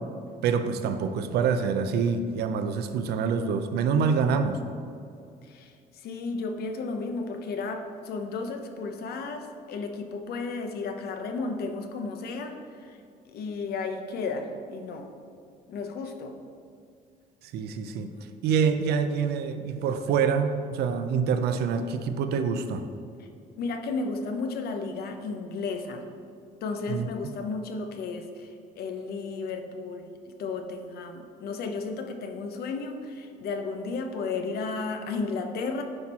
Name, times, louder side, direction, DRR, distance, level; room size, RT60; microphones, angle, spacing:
voice 1, 0.4-4.6 17.5-18.1 18.4-22.8 26.9-27.1, right 6 dB, 75° right, 8 dB, 0.6 m, -26 dB
voice 2, 6.0-12.6 12.9-13.0 13.3-15.1 15.7-16.3 23.6-26.0 26.6-28.5 28.8-30.1 30.4-35.8, left 4 dB, 65° left, 6 dB, 0.9 m, -33 dB
9.8 x 4.5 x 4.3 m, 2.4 s
cardioid pair, 110°, 17 cm